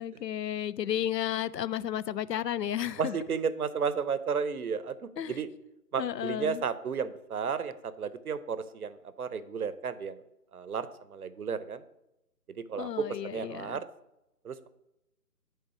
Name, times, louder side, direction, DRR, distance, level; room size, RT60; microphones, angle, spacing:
voice 1, 0.0-3.1 5.2-5.3 6.0-6.6 12.8-13.8, left 10 dB, 85° left, 0.5 m, -33 dB
voice 2, 3.0-5.5 5.9-10.2 10.5-11.8 12.6-13.8 14.4-14.7, right 6 dB, 65° right, 0.7 m, -33 dB
8.8 x 3.5 x 5.8 m
figure-of-eight pair, 145°, 48 cm